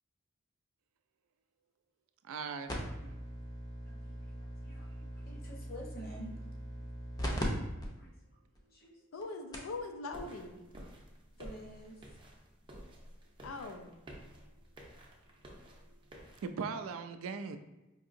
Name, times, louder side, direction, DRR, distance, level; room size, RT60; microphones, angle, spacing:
voice 1, 2.2-3.1 5.0-5.1 16.4-17.6, right 5 dB, 75° right, 9 dB, 0.3 m, -40 dB
sound 1, 2.7-7.4 7.8-7.9 8.5-8.6 9.2-9.3 9.5-9.8 11.0-11.1, equal, 20° left, 0.5 m, -40 dB
voice 2, 3.9-4.9 5.1-6.4 8.0-8.1 8.7-9.0 11.4-11.9, equal, 50° left, -2 dB, 0.9 m, -49 dB
voice 3, 9.1-10.6 13.4-14.0, left 3 dB, 80° left, 5 dB, 0.4 m, -42 dB
sound 2, 10.1-16.5, equal, 25° right, 0.6 m, -52 dB
4.6 x 2.7 x 2.5 m, 1.0 s
head